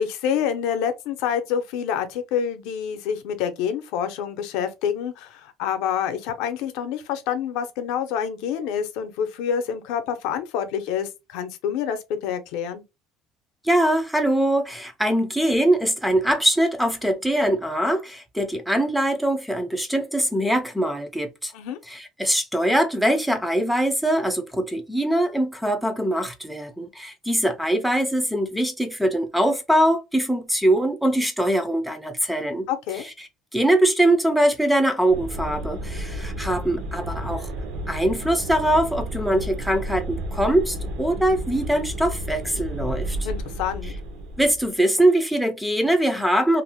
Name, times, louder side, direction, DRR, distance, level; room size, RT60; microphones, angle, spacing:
voice 1, 0.0-12.8 21.5-21.8 32.7-33.1 43.2-43.9, left 8 dB, 85° left, 0.5 m, -27 dB
voice 2, 13.6-21.5 21.9-32.7 33.0-33.1 33.5-37.5 37.9-43.2 44.4-46.6, right 1 dB, ahead, 0.3 m, -22 dB
sound 1, 35.1-44.7, right 1 dB, 70° right, 0.6 m, -32 dB
2.5 x 2.0 x 2.8 m
cardioid pair, 170°, 0 cm